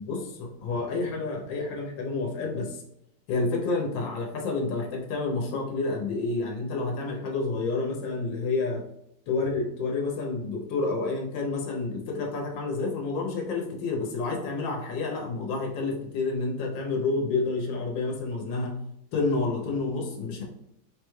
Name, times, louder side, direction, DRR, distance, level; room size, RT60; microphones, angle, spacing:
voice 1, 0.0-2.8 3.3-8.8 9.3-18.7 19.1-20.4, left 3 dB, 90° left, 0 dB, 1.4 m, -29 dB
3.9 x 2.2 x 3.0 m, 0.80 s
omnidirectional pair, 2.0 m